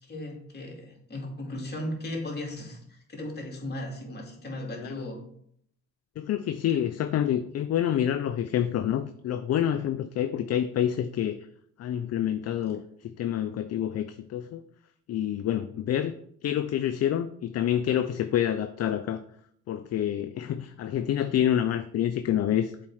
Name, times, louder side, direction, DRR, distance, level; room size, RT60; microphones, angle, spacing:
voice 1, 0.0-5.2, left 1 dB, 35° left, 0 dB, 2.5 m, -36 dB
voice 2, 6.2-11.4 11.8-14.6 15.1-16.1 16.4-19.2 19.7-22.7, left 10 dB, 55° left, 10 dB, 0.5 m, -27 dB
7.4 x 4.4 x 4.8 m, 0.67 s
cardioid pair, 90°, 30 cm